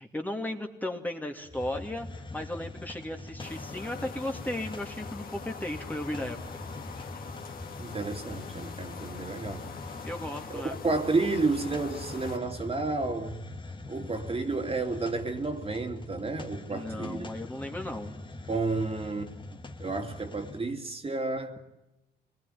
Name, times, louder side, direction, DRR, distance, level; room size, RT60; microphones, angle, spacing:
voice 1, 0.0-6.4 10.0-10.8 16.7-18.2, left 1 dB, 10° left, 2.5 m, -35 dB
Hiss, 1.4-20.7, left 2 dB, 25° left, 1.8 m, -43 dB
sound 1, 3.4-12.4, left 5 dB, 45° left, 2.4 m, -44 dB
voice 2, 7.8-9.6 10.5-13.4 13.9-17.3 18.5-19.3 19.8-21.6, right 3 dB, 30° right, 2.9 m, -31 dB
24.5 x 20.0 x 9.2 m
cardioid pair, 90°, 20 cm